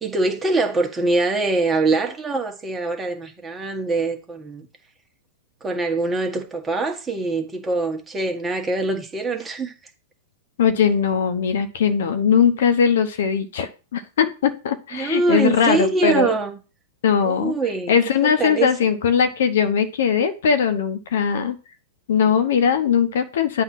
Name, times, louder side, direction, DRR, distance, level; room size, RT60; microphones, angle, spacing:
voice 1, 0.0-4.7 5.6-9.7 14.9-16.6 17.2-17.9 18.2-18.7, right 3 dB, 15° right, 1.4 m, -23 dB
voice 2, 10.6-16.3 17.0-17.5 17.9-21.6 22.1-23.6, left 7 dB, 70° left, 0.9 m, -20 dB
8.2 x 2.8 x 5.9 m
hypercardioid pair, 115°, 0 cm